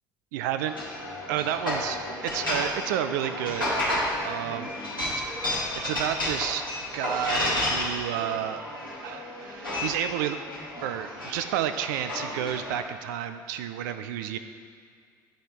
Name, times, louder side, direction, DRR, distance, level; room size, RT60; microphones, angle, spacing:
voice 1, 0.3-2.0 2.2-3.7 4.2-4.7 5.4-5.5 5.8-6.6 6.9-8.6 9.0-10.4 10.8-14.4, right 10 dB, 65° right, 9 dB, 0.4 m, -31 dB
sound 1, 0.6-12.8, left 1 dB, 90° left, 1.4 m, -31 dB
10.0 x 3.4 x 4.4 m, 2.1 s
figure-of-eight pair, 60°, 11 cm